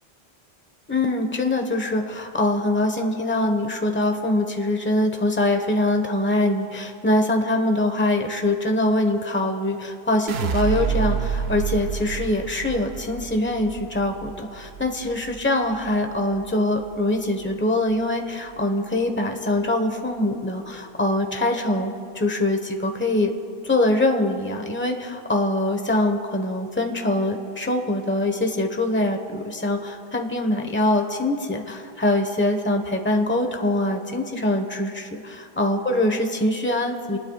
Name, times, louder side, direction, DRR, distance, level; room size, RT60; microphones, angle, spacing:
voice 1, 0.9-23.3 23.6-37.2, left 1 dB, 10° left, 4 dB, 1.1 m, -23 dB
sound 1, 10.3-16.5 16.8-17.4, right 7 dB, 75° right, 0.9 m, -29 dB
27.5 x 19.5 x 2.4 m, 2.4 s
omnidirectional pair, 1.1 m